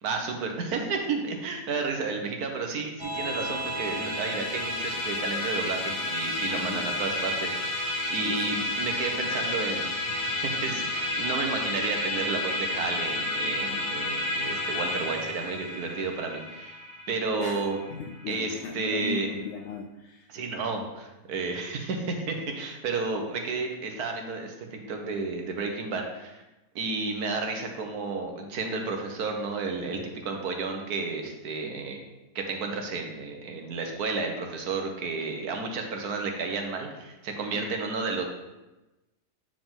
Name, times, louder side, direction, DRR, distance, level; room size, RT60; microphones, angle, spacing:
voice 1, 0.0-16.8 17.1-17.8 18.3-19.3 20.3-26.4 26.7-32.0 32.3-38.2, right 4 dB, 70° right, 3 dB, 1.5 m, -32 dB
Musical instrument, 3.0-18.5, left 1 dB, 20° left, 1.4 m, -31 dB
voice 2, 6.5-7.0 8.2-8.6 17.4-17.6 17.9-20.3 37.5-37.8, left 5 dB, 70° left, 2 dB, 0.7 m, -37 dB
8.8 x 5.0 x 3.7 m, 1.0 s
omnidirectional pair, 1.7 m